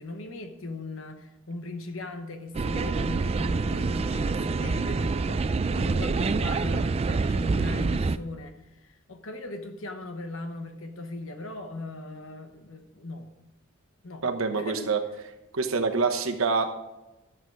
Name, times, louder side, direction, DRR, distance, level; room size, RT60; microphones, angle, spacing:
voice 1, 0.0-5.5 5.8-13.3 14.0-14.3 14.6-14.9, left 2 dB, 65° left, 6 dB, 1.0 m, -38 dB
sound 1, 2.5-8.2, right 4 dB, 30° right, 0.3 m, -26 dB
voice 2, 14.2-15.0 15.5-16.8, right 4 dB, 70° right, 5 dB, 1.0 m, -26 dB
12.0 x 7.6 x 4.6 m, 1.0 s
head